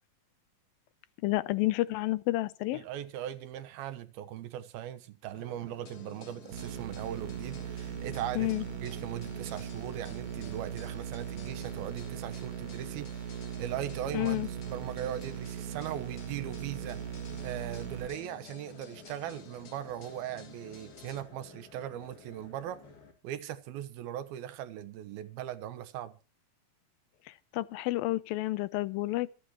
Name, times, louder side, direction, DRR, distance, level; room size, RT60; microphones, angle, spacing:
voice 1, 1.2-2.8 8.4-8.6 14.1-14.5 27.5-29.3, left 17 dB, 75° left, 2.4 m, -30 dB
voice 2, 2.7-8.5 8.8-17.0 17.4-22.8 23.2-26.1, right 11 dB, 80° right, 3.0 m, -39 dB
sound 1, 5.3-23.1, left 4 dB, 35° left, 3.7 m, -52 dB
sound 2, 5.9-21.2, left 6 dB, 50° left, 3.2 m, -56 dB
sound 3, 6.5-18.1, right 9 dB, 55° right, 2.9 m, -39 dB
26.5 x 9.3 x 3.0 m
omnidirectional pair, 4.4 m